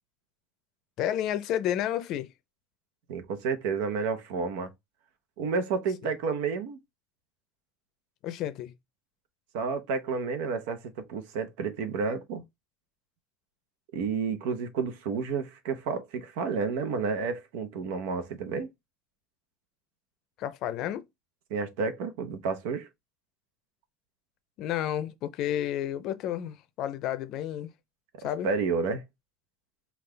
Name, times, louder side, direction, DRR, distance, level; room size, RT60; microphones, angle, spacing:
voice 1, 1.0-2.3 8.2-8.7 20.4-21.0 24.6-27.7 28.2-28.5, left 11 dB, 50° left, 0.6 m, -31 dB
voice 2, 3.1-4.7 5.4-6.8 9.5-12.4 13.9-18.7 21.5-22.9 28.4-29.0, right 5 dB, 80° right, 0.9 m, -30 dB
5.5 x 2.5 x 3.3 m
cardioid pair, 155°, 0 cm